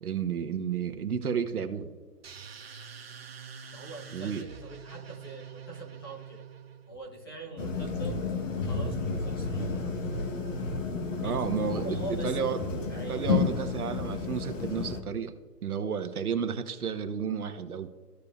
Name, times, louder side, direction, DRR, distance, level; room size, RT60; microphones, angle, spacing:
voice 1, 0.0-1.9 4.1-4.4 11.2-15.3 15.6-17.9, right 7 dB, 65° right, 7 dB, 1.1 m, -32 dB
sound 1, 2.2-7.0, right 7 dB, 40° right, 0.7 m, -46 dB
voice 2, 3.7-6.4 6.9-10.3 11.2-12.6 12.9-13.2, right 2 dB, 15° left, -1 dB, 1.0 m, -44 dB
sound 2, 7.6-15.0, left 4 dB, 55° left, 1.2 m, -31 dB
14.5 x 5.0 x 2.4 m, 1.4 s
hypercardioid pair, 165°, 48 cm